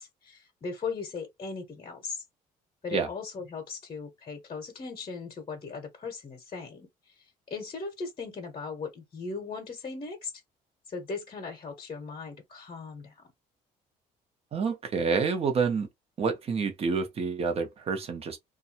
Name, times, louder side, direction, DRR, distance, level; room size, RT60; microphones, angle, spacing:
voice 1, 0.0-2.2 2.8-10.3 10.9-13.2, left 4 dB, 35° left, 0.8 m, -38 dB
voice 2, 14.5-15.9 16.2-18.4, right 5 dB, 40° right, 0.8 m, -28 dB
2.6 x 2.3 x 2.7 m
cardioid pair, 125°, 16 cm